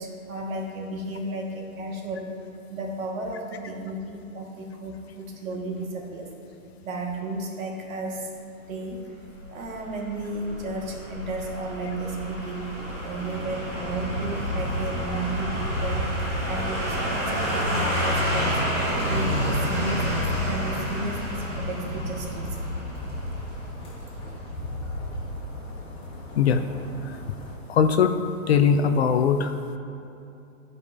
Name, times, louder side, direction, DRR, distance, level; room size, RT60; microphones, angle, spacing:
voice 1, 0.0-2.3 2.7-6.3 6.8-8.3 8.7-9.1 9.5-12.8 13.0-16.1 16.5-18.6 19.0-22.6, right 2 dB, 70° right, 0 dB, 1.7 m, -33 dB
sound 1, 9.4-24.3 24.6-24.7, equal, 10° right, 0.4 m, -29 dB
sound 2, 12.7-27.6, left 1 dB, 10° left, 1.4 m, -36 dB
voice 2, 27.7-28.1 28.5-29.5, left 7 dB, 50° left, 8 dB, 0.4 m, -20 dB
13.0 x 5.6 x 2.6 m, 2.7 s
hypercardioid pair, 150°, 42 cm